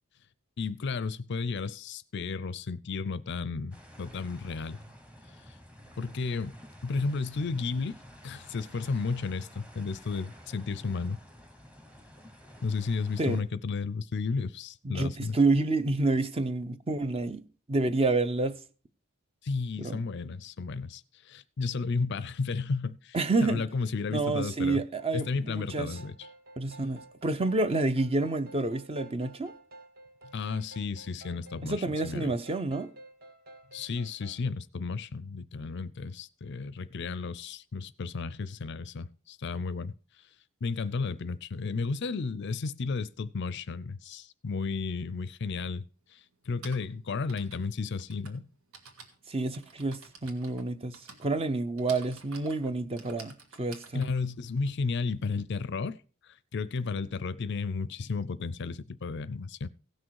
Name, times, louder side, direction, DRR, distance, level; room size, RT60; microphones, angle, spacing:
voice 1, 0.6-4.8 5.5-5.6 6.0-6.5 6.8-11.2 12.6-15.4 19.4-24.8 25.1-26.3 30.3-32.3 33.7-39.9 40.6-45.8 46.1-46.2 46.5-48.4 53.9-59.7, left 4 dB, 55° left, 0.5 m, -33 dB
sound 1, 3.7-13.4, equal, 5° right, 1.0 m, -51 dB
voice 2, 14.8-17.4 17.7-18.6 19.8-20.0 23.1-23.6 24.1-26.0 26.6-29.5 31.6-32.9 49.3-54.1, right 2 dB, 25° right, 0.6 m, -29 dB
sound 2, 25.0-34.5, right 2 dB, 45° right, 1.1 m, -52 dB
Typing, 45.3-45.4 46.3-55.4, right 4 dB, 85° right, 1.9 m, -51 dB
16.5 x 6.3 x 4.6 m
head